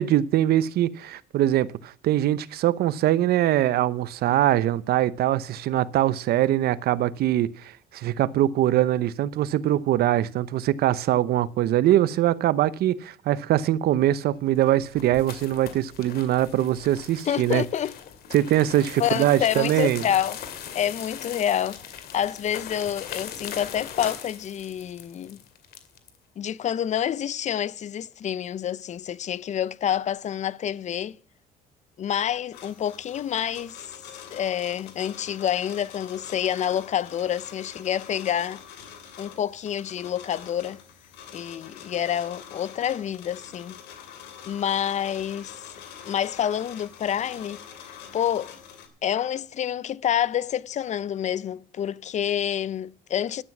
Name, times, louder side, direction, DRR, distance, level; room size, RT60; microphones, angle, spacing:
voice 1, 0.0-17.6 18.3-20.1, right 13 dB, 70° right, 0.8 m, -22 dB
sound 1, 14.4-26.2, left 8 dB, 65° left, 2.3 m, -40 dB
voice 2, 17.3-17.9 19.0-20.4 20.7-25.4 26.4-31.2 32.0-33.9 34.3-38.6 39.2-40.8 41.3-43.8 44.5-45.6 46.0-47.6 48.1-48.5 49.0-53.4, left 10 dB, 45° left, 0.5 m, -28 dB
sound 2, 32.5-48.9, left 8 dB, 85° left, 2.9 m, -45 dB
12.5 x 9.2 x 6.0 m
cardioid pair, 110°, 17 cm